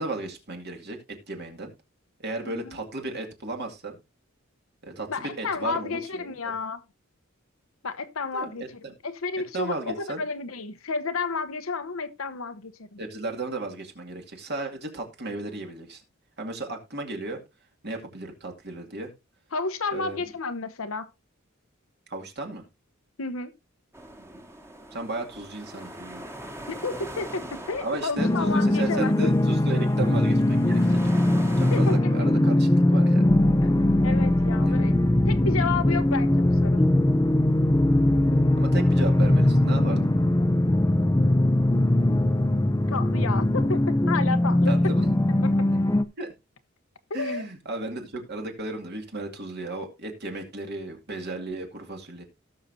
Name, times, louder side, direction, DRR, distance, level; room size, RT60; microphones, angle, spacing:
voice 1, 0.0-1.7 2.2-4.0 4.8-6.5 8.3-8.9 9.5-10.2 13.0-16.0 16.4-17.4 17.8-19.1 19.9-20.2 22.1-22.6 24.2-24.4 24.9-26.3 27.8-31.0 31.6-33.2 34.6-34.9 38.6-40.1 44.7-45.0 46.2-46.3 47.1-52.2, right 2 dB, 55° right, 2.4 m, -35 dB
voice 2, 2.4-2.8 5.1-6.8 7.8-8.6 9.0-13.0 19.5-21.1 23.2-23.5 26.7-29.1 31.7-32.3 33.6-33.7 34.0-34.9 35.3-37.0 42.9-44.8 45.4-45.7 47.1-47.4, left 4 dB, 85° left, 1.0 m, -31 dB
sound 1, 23.9-32.0, right 1 dB, 15° right, 1.5 m, -41 dB
sound 2, 28.2-46.0, left 1 dB, 15° left, 0.6 m, -21 dB
17.5 x 6.5 x 2.7 m
head